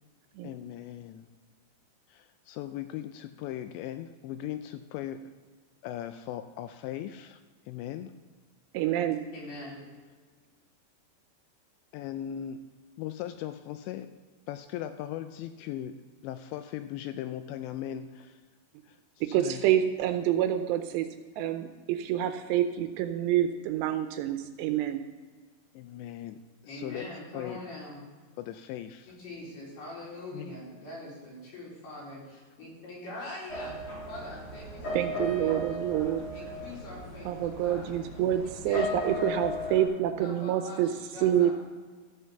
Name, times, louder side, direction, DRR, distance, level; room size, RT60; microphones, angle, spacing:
voice 1, 0.4-1.3 2.1-5.3 5.8-8.1 11.9-12.6 13.0-14.1 14.5-18.4 18.8-19.6 25.7-27.1 27.3-27.6 28.4-29.2 30.3-30.6 38.2-38.3 38.7-38.9 40.3-40.4, left 11 dB, 85° left, 9 dB, 2.7 m, -39 dB
voice 2, 8.7-9.2 19.3-21.1 21.4-25.0 34.9-36.2 37.3-40.9 41.2-41.5, right 11 dB, 80° right, 8 dB, 2.7 m, -27 dB
voice 3, 9.3-9.9 26.7-28.0 29.1-33.7 34.1-38.0 38.3-41.5, left 1 dB, 60° left, -6 dB, 6.0 m, -43 dB
sound 1, 33.5-39.8, left 1 dB, 45° left, 3.7 m, -36 dB
14.0 x 7.2 x 5.7 m, 1.4 s
omnidirectional pair, 5.2 m